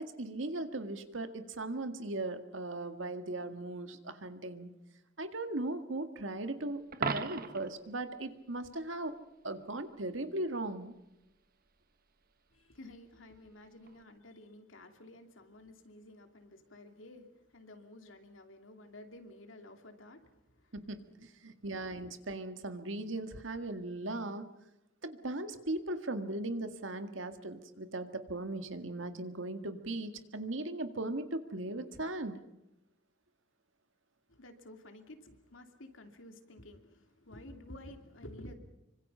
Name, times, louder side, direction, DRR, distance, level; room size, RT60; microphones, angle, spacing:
voice 1, 0.0-4.7 5.2-6.8 7.1-9.1 9.4-10.9 20.7-24.5 25.0-32.4, right 2 dB, 75° right, 1.9 m, -38 dB
Coin (dropping), 6.9-7.8 13.9-14.0, right 4 dB, 50° right, 1.2 m, -35 dB
voice 2, 12.5-20.8 21.5-21.6 34.3-38.6, left 1 dB, 80° left, 2.7 m, -52 dB
26.0 x 25.0 x 5.6 m
head